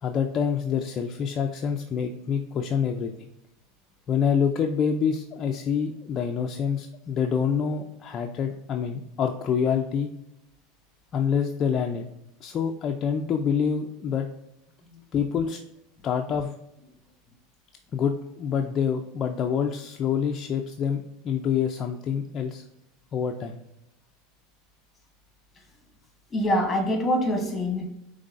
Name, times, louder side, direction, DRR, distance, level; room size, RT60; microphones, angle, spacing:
voice 1, 0.0-3.3 4.1-10.1 11.1-12.1 12.4-14.3 15.1-15.6 16.0-16.5 17.9-22.6 23.1-23.6, left 7 dB, 35° left, 3 dB, 0.4 m, -26 dB
voice 2, 26.3-27.8, equal, 15° left, 3 dB, 1.2 m, -25 dB
5.3 x 3.2 x 2.5 m, 0.84 s
supercardioid pair, 125°, 0 cm